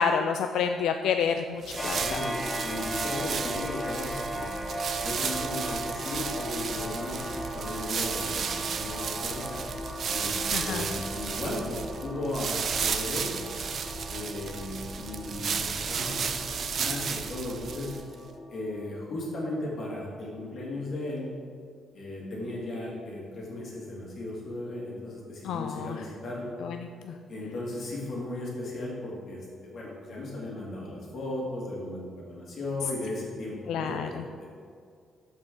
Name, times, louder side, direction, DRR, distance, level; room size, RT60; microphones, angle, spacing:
voice 1, 0.0-2.2 10.5-10.8 25.4-26.0 26.6-27.1 33.7-34.1, left 6 dB, 80° left, 6 dB, 0.3 m, -29 dB
sound 1, 1.6-18.1, right 6 dB, 40° right, 0.5 m, -33 dB
voice 2, 1.7-4.5 4.9-9.6 10.1-13.3 14.1-17.9 18.5-21.3 21.9-26.5 27.3-34.5, left 2 dB, 45° left, -4 dB, 2.1 m, -36 dB
sound 2, 1.8-19.0, equal, 10° left, 0.7 m, -38 dB
13.5 x 4.9 x 3.8 m, 2.3 s
cardioid pair, 175°, 0 cm